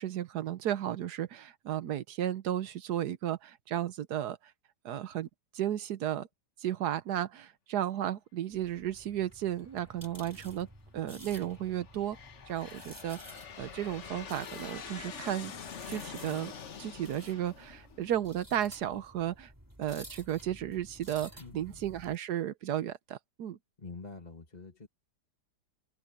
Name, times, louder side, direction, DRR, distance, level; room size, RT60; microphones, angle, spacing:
voice 1, 0.0-4.4 4.8-5.3 5.5-6.3 6.6-10.7 10.9-12.2 12.5-13.2 13.6-15.5 15.9-16.5 16.8-19.5 19.8-23.6, right 11 dB, 80° right, 1.4 m, -34 dB
sound 1, 8.5-22.2, equal, 10° right, 4.0 m, -53 dB
Aircraft, 9.8-10.4 11.1-18.6, left 7 dB, 50° left, 1.3 m, -46 dB
voice 2, 21.4-21.8 23.8-24.9, left 3 dB, 25° left, 2.3 m, -46 dB
omnidirectional pair, 1.7 m